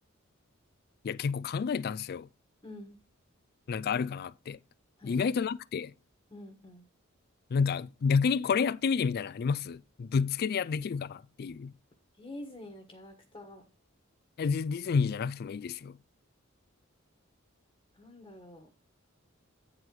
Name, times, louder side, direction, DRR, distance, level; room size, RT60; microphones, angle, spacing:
voice 1, 1.0-2.3 3.7-4.6 5.0-5.9 7.5-11.7 14.4-16.0, left 5 dB, 50° left, 0.3 m, -30 dB
voice 2, 2.6-3.0 5.0-5.4 6.3-6.8 12.2-13.6 17.9-18.7, left 1 dB, 25° left, 1.5 m, -47 dB
9.4 x 4.7 x 5.2 m
head